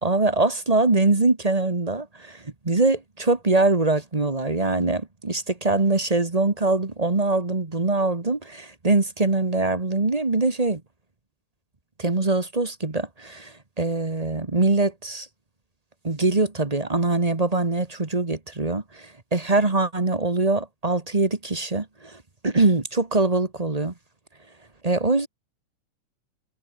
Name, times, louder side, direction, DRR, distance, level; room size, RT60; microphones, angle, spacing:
voice 1, 0.0-10.8 12.0-15.3 16.0-22.2 22.4-23.9 24.8-25.3, right 3 dB, 25° right, 0.9 m, -23 dB
omnidirectional pair, 3.5 m